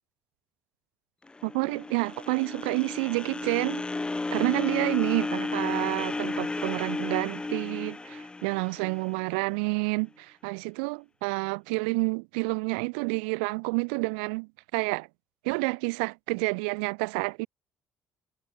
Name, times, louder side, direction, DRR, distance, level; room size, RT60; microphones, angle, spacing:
sound 1, 1.3-9.5, left 3 dB, 15° left, 0.7 m, -33 dB
voice 1, 1.4-3.8 4.3-15.1 15.4-17.5, right 33 dB, 85° right, 0.7 m, -29 dB
hypercardioid pair, 65°, 5 cm